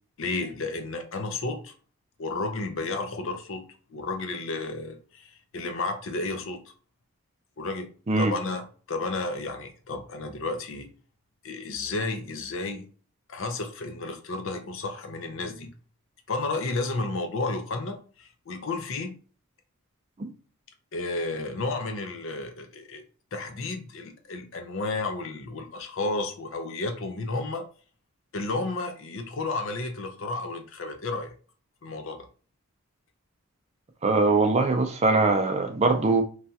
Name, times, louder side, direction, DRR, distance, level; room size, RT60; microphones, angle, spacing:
voice 1, 0.2-1.7 2.2-6.6 7.6-7.9 8.2-10.9 11.4-12.9 13.3-15.7 16.3-19.2 20.9-23.0 23.3-27.7 28.3-31.3 31.8-32.3, left 3 dB, 60° left, 0.5 m, -32 dB
voice 2, 34.0-36.2, right 3 dB, 30° right, 0.4 m, -22 dB
3.1 x 2.3 x 2.7 m
head